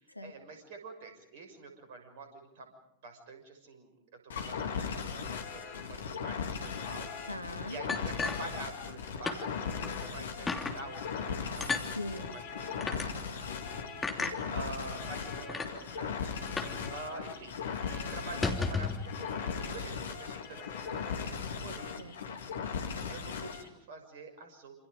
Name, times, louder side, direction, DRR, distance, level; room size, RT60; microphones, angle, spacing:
voice 1, 0.2-2.3 2.6-2.7 3.0-3.9 4.5-4.6 5.0-7.1 7.7-10.5 10.7-11.9 12.3-13.2 13.7-13.8 14.5-16.4 16.9-17.5 17.8-18.9 19.2-21.0 21.3-22.1 23.1-24.7, right 2 dB, 50° right, 6 dB, 6.5 m, -46 dB
sound 1, 4.3-23.7, left 6 dB, 65° left, 2.3 m, -38 dB
sound 2, 5.2-21.7, left 5 dB, 45° left, 5.1 m, -49 dB
voice 2, 7.2-7.8 11.6-12.4 14.2-14.5 22.0-22.4 23.4-23.5, left 1 dB, 85° left, 8 dB, 1.8 m, -42 dB
sound 3, 7.9-9.0 9.3-9.4 9.8-9.9 10.5-10.8 11.6-11.9 12.8-13.1 14.0-14.4 15.1-15.2 15.5-15.7 16.6-16.8 17.1-17.2 17.5-17.7 18.3-19.0, left 4 dB, 15° left, 3.0 m, -33 dB
28.0 x 28.0 x 5.3 m, 0.72 s
figure-of-eight pair, 90°, 0 cm